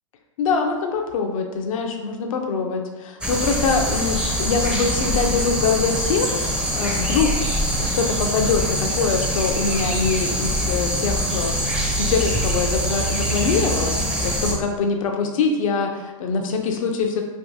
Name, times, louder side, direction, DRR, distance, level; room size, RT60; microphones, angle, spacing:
voice 1, 0.4-7.3 7.8-14.0 14.2-17.2, left 5 dB, 70° left, 3 dB, 0.5 m, -24 dB
sound 1, 3.2-14.5, equal, 5° right, 0.5 m, -24 dB
3.4 x 2.4 x 2.7 m, 1.2 s
hypercardioid pair, 105°, 18 cm